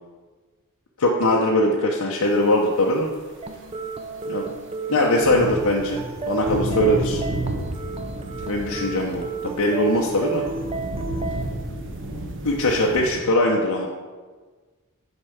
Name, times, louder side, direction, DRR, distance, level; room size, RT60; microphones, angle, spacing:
voice 1, 1.0-3.1 4.3-4.5 4.9-6.0 6.3-7.2 8.5-10.4 12.4-13.9, left 1 dB, 75° left, -2 dB, 0.8 m, -21 dB
sound 1, 2.8-2.9 3.4-13.1, right 2 dB, 60° right, 1.0 m, -32 dB
sound 2, 3.4-11.4, right 4 dB, 25° right, 0.5 m, -32 dB
6.8 x 4.6 x 6.8 m, 1.4 s
head